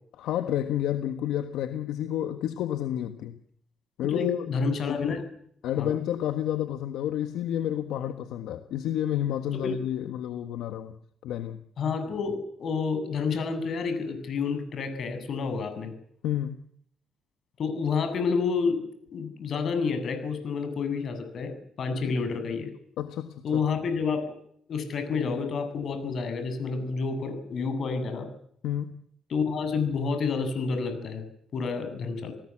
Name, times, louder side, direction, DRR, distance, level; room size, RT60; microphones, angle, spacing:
voice 1, 0.2-3.4 4.0-4.5 4.9-5.2 5.6-11.0 11.2-11.6 16.2-16.6 21.9-22.1 23.0-23.4 28.6-29.0, left 11 dB, 85° left, 9 dB, 1.4 m, -30 dB
voice 2, 4.0-5.2 5.8-5.9 9.6-9.7 11.8-15.9 17.6-18.8 19.1-22.7 23.4-24.4 24.7-28.3 29.3-31.2 31.5-32.3, left 5 dB, 60° left, 8 dB, 7.8 m, -29 dB
29.5 x 18.5 x 7.5 m, 0.68 s
cardioid pair, 90°, 0 cm